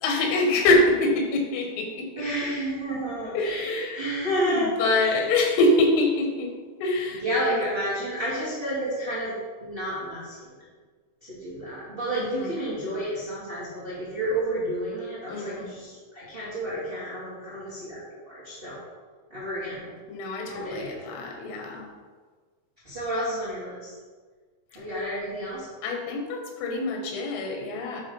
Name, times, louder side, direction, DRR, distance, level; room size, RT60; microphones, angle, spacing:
voice 1, 0.0-2.3 3.4-4.1 4.4-6.5 6.8-7.6 12.1-12.5 15.3-15.7 20.1-21.9 25.8-28.0, left 2 dB, 90° left, 2 dB, 3.7 m, -25 dB
voice 2, 2.1-5.2 7.1-9.3 9.6-10.4 11.3-18.8 19.3-19.9 20.4-20.9 22.8-23.9 24.7-25.7, right 1 dB, 25° right, -12 dB, 1.3 m, -30 dB
9.3 x 3.9 x 5.4 m, 1.5 s
omnidirectional pair, 5.6 m